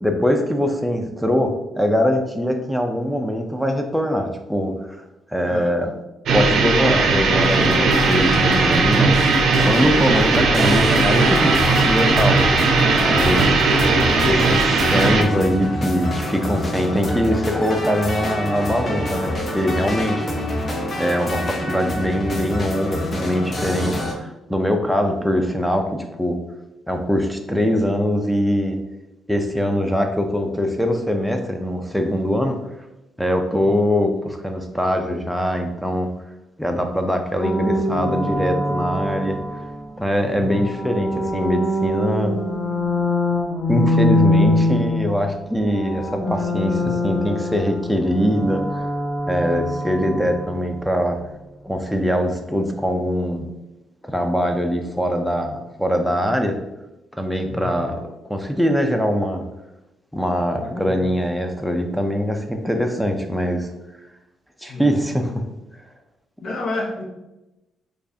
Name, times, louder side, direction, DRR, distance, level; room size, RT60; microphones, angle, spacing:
voice 1, 0.0-5.0 5.3-5.9 6.3-9.2 9.6-11.6 11.8-13.7 14.3-20.3 21.0-26.4 26.9-28.8 29.3-32.6 33.2-36.1 36.6-39.4 40.0-42.3 43.7-48.8 49.3-51.2 51.6-53.5 54.0-56.6 57.2-58.0 58.3-59.4 60.1-63.7 64.6-65.4, equal, ahead, 4 dB, 0.4 m, -22 dB
sound 1, 6.3-15.2, right 3 dB, 70° right, 0.5 m, -18 dB
sound 2, 7.4-24.1, left 1 dB, 35° left, 0.8 m, -26 dB
voice 2, 12.9-13.8 40.3-40.7 44.5-44.7 46.8-47.0 57.5-57.8 60.5-61.1 64.7-64.9 66.4-67.1, left 2 dB, 60° left, -1 dB, 0.9 m, -31 dB
sound 3, 37.4-39.8 40.4-45.3 45.6-50.5, left 1 dB, 15° left, 1.1 m, -23 dB
4.6 x 2.4 x 2.7 m, 0.98 s
cardioid pair, 90°, 0 cm